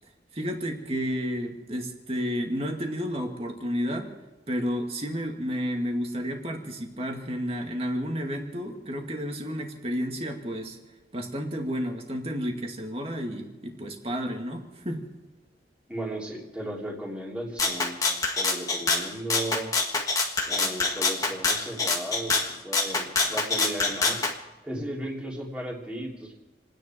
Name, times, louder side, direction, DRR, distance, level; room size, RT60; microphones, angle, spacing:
voice 1, 0.3-4.1 4.5-10.8 11.1-15.1, equal, 35° right, 2 dB, 2.3 m, -31 dB
voice 2, 15.9-18.0 18.4-19.7 20.5-24.2 24.6-26.3, right 1 dB, 5° right, -3 dB, 3.3 m, -35 dB
Rattle (instrument), 17.6-24.3, left 3 dB, 20° left, 1.6 m, -26 dB
30.0 x 10.0 x 4.6 m, 1.2 s
head